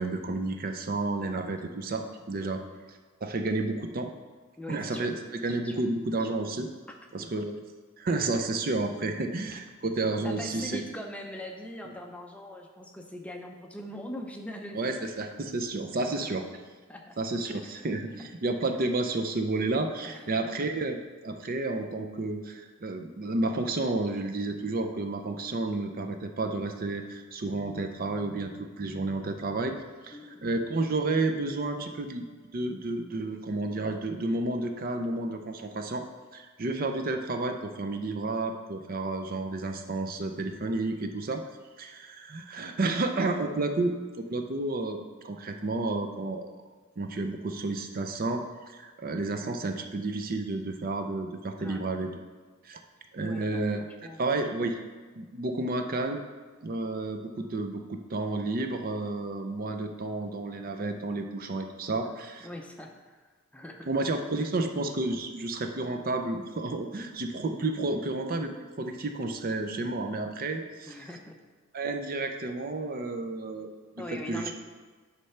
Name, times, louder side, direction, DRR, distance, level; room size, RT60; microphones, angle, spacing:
voice 1, 0.0-2.6 3.2-4.1 4.7-6.7 7.1-7.5 8.0-10.8 14.7-16.4 17.2-21.0 21.2-29.8 30.0-32.2 32.5-36.0 36.3-41.4 41.8-43.9 44.3-45.0 45.2-46.5 47.0-52.1 52.6-52.8 53.1-53.8 54.2-54.8 55.1-56.2 56.6-62.5 63.9-70.9 71.7-73.7 74.1-74.5, right 2 dB, 45° right, 5 dB, 0.5 m, -31 dB
voice 2, 4.6-5.1 5.6-5.8 7.2-7.4 9.3-9.4 10.2-15.0 16.0-16.3 16.9-17.2 17.5-17.8 18.2-18.3 20.0-20.5 30.1-30.5 51.6-51.8 53.2-54.3 62.4-63.2 63.5-63.9 70.9-71.4 74.0-74.5, left 1 dB, 5° left, 2 dB, 0.5 m, -42 dB
9.7 x 3.3 x 5.6 m, 1.4 s
head